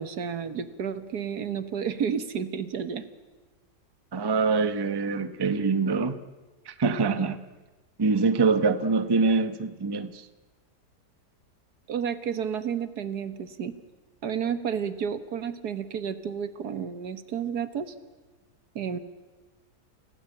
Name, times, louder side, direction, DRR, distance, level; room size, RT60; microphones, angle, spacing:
voice 1, 0.0-3.1 11.9-13.8 14.2-17.9 18.8-19.0, right 7 dB, 75° right, 11 dB, 1.8 m, -31 dB
voice 2, 4.1-6.2 6.7-7.4 8.0-10.3, right 4 dB, 20° right, 11 dB, 0.7 m, -24 dB
29.0 x 16.5 x 8.8 m, 1.2 s
omnidirectional pair, 1.7 m